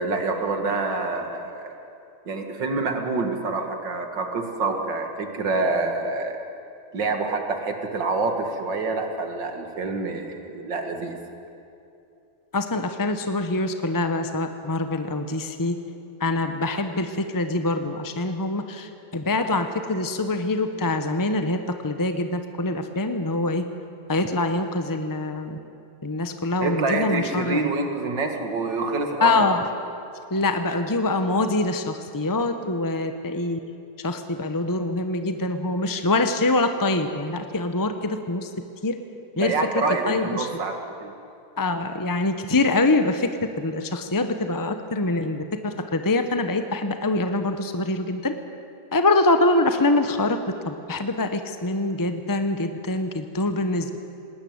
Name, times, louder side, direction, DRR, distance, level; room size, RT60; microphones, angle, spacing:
voice 1, 0.0-1.8 2.3-6.4 6.9-11.2 26.6-29.4 39.4-41.1, right 3 dB, 70° right, 5 dB, 2.6 m, -27 dB
voice 2, 12.5-15.8 16.2-21.6 21.8-23.6 24.1-25.6 26.0-27.6 29.2-29.6 30.3-33.6 34.0-38.5 38.8-39.0 39.4-40.5 41.6-48.3 48.9-50.4 50.6-54.0, left 2 dB, 25° left, 8 dB, 0.5 m, -24 dB
19.5 x 18.5 x 9.5 m, 2.7 s
omnidirectional pair, 2.1 m